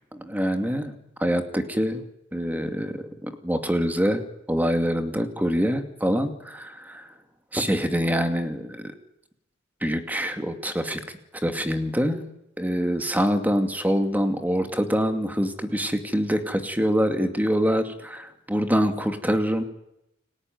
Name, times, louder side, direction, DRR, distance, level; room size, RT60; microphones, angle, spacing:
voice 1, 0.1-0.9 1.2-2.0 2.3-4.2 4.5-7.1 7.5-8.9 9.8-11.0 11.4-12.3 12.6-19.6, equal, 10° right, 7 dB, 2.4 m, -25 dB
29.5 x 19.5 x 9.5 m, 0.86 s
head